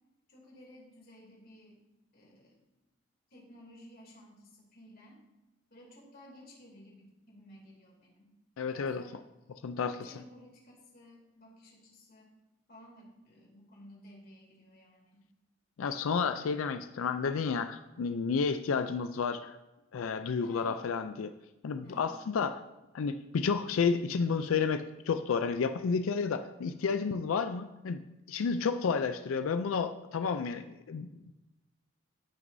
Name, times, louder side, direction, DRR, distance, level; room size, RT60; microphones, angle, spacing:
voice 1, 0.3-1.8 2.1-2.6 3.3-5.2 5.7-8.3 8.7-12.3 12.7-15.3 20.4-21.3 21.8-22.1, left 1 dB, 50° left, -2 dB, 2.6 m, -55 dB
voice 2, 8.6-9.0 9.6-9.9 15.8-19.6 19.9-21.3 21.6-22.6 22.9-28.0 28.3-31.3, left 5 dB, 85° left, 10 dB, 0.4 m, -31 dB
15.0 x 6.1 x 2.6 m, 1.0 s
head